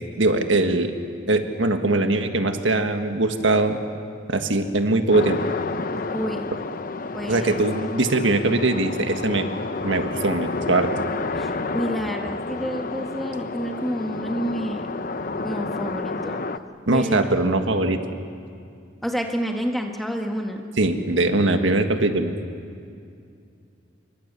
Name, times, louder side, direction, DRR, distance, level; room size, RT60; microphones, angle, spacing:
voice 1, 0.2-0.9 1.3-3.8 4.3-5.4 7.3-9.5 9.8-10.9 16.9-18.0 20.8-22.3, right 2 dB, 75° right, 6 dB, 1.6 m, -21 dB
sound 1, 5.1-16.6, left 3 dB, 45° left, 0.8 m, -30 dB
voice 2, 6.1-6.5 7.1-7.6 11.3-14.9 15.4-16.4 16.9-17.6 19.0-20.7, equal, ahead, 2 dB, 1.6 m, -29 dB
26.5 x 24.0 x 7.0 m, 2.4 s
head